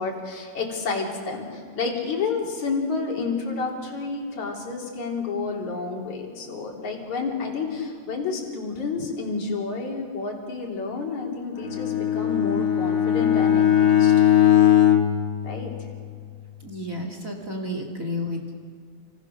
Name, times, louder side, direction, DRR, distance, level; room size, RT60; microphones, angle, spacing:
voice 1, 0.0-14.2 15.4-15.7, left 4 dB, 50° left, -1 dB, 4.7 m, -30 dB
Bowed string instrument, 11.6-16.2, left 10 dB, 70° left, 0.9 m, -20 dB
voice 2, 16.6-18.5, left 1 dB, 25° right, 3 dB, 2.1 m, -31 dB
29.5 x 25.5 x 6.6 m, 2.1 s
omnidirectional pair, 4.5 m